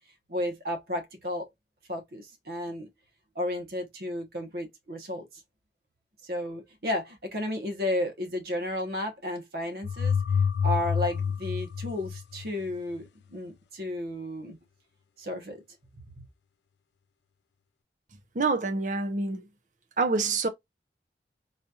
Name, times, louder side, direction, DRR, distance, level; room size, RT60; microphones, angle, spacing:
voice 1, 0.3-1.5 1.9-2.9 3.3-5.3 6.2-10.2 10.6-14.6 15.2-15.6, left 1 dB, 60° right, 1.1 m, -33 dB
sound 1, 9.8-12.7, left 6 dB, 80° left, 0.3 m, -28 dB
voice 2, 18.4-19.4 20.0-20.5, right 3 dB, 45° right, 0.6 m, -26 dB
4.0 x 2.8 x 2.4 m
head